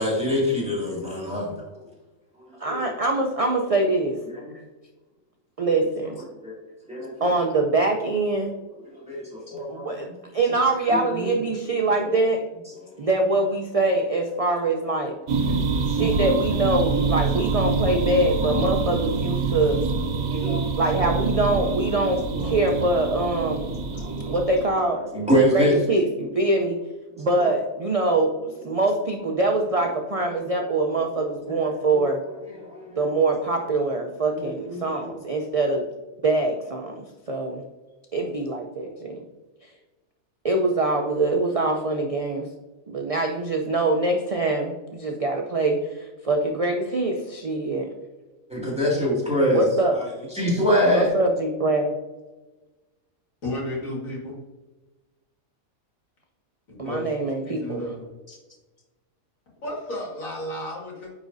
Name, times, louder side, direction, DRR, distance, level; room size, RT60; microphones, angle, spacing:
voice 1, 0.0-1.8 2.7-2.9 6.4-6.5 6.9-7.3 8.9-10.0 10.9-11.3 15.5-16.3 20.3-20.6 20.9-21.0 22.3-22.5 23.8-24.3 25.1-25.8 27.3-27.5 32.6-33.0 34.3-35.1 48.5-49.6 49.9-50.0 50.3-51.1, equal, 5° right, -5 dB, 2.0 m, -25 dB
voice 2, 2.6-4.2 5.6-6.2 7.2-8.5 9.5-10.1 10.3-12.4 13.0-15.2 15.9-19.8 20.7-23.8 24.3-25.0 25.5-26.8 27.2-32.2 33.0-35.8 36.2-37.6 38.1-39.2 39.6-39.7 40.4-42.5 42.9-47.9 49.5-50.0 50.9-51.9 56.8-57.8 58.3-58.4, right 2 dB, 60° right, 2 dB, 0.3 m, -24 dB
sound 1, 15.3-24.7, right 4 dB, 85° right, 1.2 m, -26 dB
voice 3, 53.4-54.4 56.8-58.1 59.6-61.1, left 1 dB, 70° left, -2 dB, 2.3 m, -33 dB
9.6 x 4.2 x 2.6 m, 1.2 s
omnidirectional pair, 1.5 m